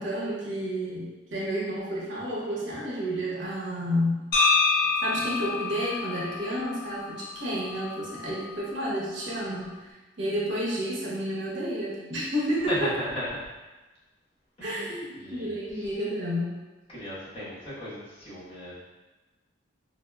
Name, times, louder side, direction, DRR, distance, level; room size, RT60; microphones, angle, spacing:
voice 1, 0.0-4.3 4.7-12.9 14.6-16.5, equal, 90° right, -6 dB, 0.9 m, -31 dB
sound 1, 4.3-8.4, left 4 dB, 55° left, 0.7 m, -28 dB
voice 2, 12.7-13.5 14.6-15.9 16.9-18.7, left 1 dB, 30° left, -11 dB, 1.2 m, -36 dB
4.0 x 2.1 x 2.3 m, 1.1 s
head